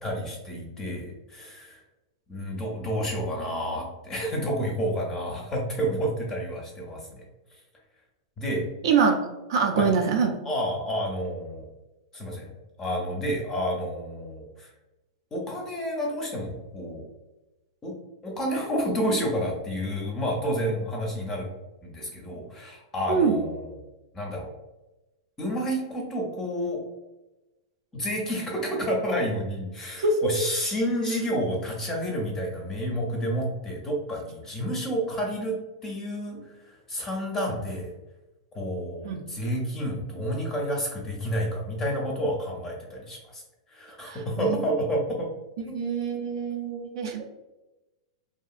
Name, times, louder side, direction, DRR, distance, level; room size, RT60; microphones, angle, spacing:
voice 1, 0.0-1.8 2.3-7.2 8.4-8.7 9.7-9.9 10.4-11.7 12.1-12.5 12.8-14.7 15.3-17.0 17.8-17.9 18.2-21.5 21.8-23.7 24.1-24.5 25.4-26.8 27.9-35.6 35.8-37.9 38.5-43.4 43.7-45.3 45.7-45.8, equal, 15° left, -1 dB, 0.5 m, -30 dB
voice 2, 8.8-9.2 9.5-10.3 23.1-23.4 30.0-30.5 39.0-39.2 44.0-44.7 45.7-47.2, right 5 dB, 70° right, 2 dB, 0.4 m, -24 dB
2.7 x 2.5 x 2.4 m, 1.0 s
supercardioid pair, 140°, 3 cm